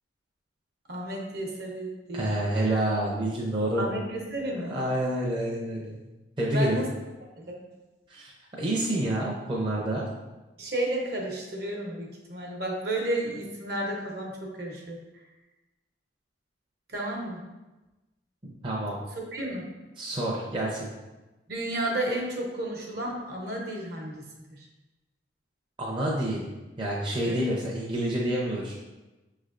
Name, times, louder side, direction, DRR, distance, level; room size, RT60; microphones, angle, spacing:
voice 1, 0.9-2.3 3.8-4.7 6.5-6.9 7.4-7.6 10.6-15.0 16.9-17.4 19.2-19.6 21.5-24.2 27.2-27.3, right 1 dB, 60° right, -1 dB, 0.9 m, -32 dB
voice 2, 2.1-3.9 4.7-6.0 6.4-6.8 8.1-8.3 8.6-10.1 18.4-19.0 20.0-20.9 25.8-26.5 26.8-28.7, right 1 dB, 25° right, -5 dB, 0.6 m, -28 dB
5.9 x 3.2 x 2.5 m, 1.1 s
head